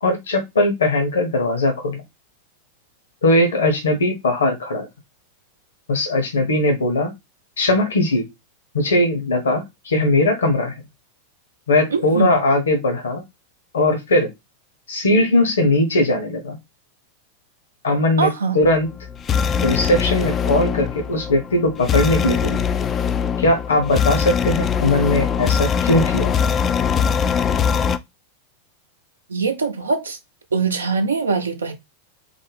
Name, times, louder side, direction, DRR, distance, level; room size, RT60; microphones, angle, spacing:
voice 1, 0.0-2.0 3.2-4.9 5.9-7.1 7.6-8.2 8.7-10.7 11.7-13.2 13.7-14.3 14.9-16.6 17.8-18.3 18.5-18.9 19.6-22.6 23.4-26.3, left 1 dB, 70° left, 0.9 m, -19 dB
voice 2, 11.9-12.4 18.2-18.6 29.3-30.2 30.5-31.7, right 4 dB, 70° right, 0.6 m, -22 dB
sound 1, 18.6-28.0, left 7 dB, 25° left, 0.3 m, -22 dB
3.9 x 2.0 x 3.3 m
figure-of-eight pair, 90°, 0 cm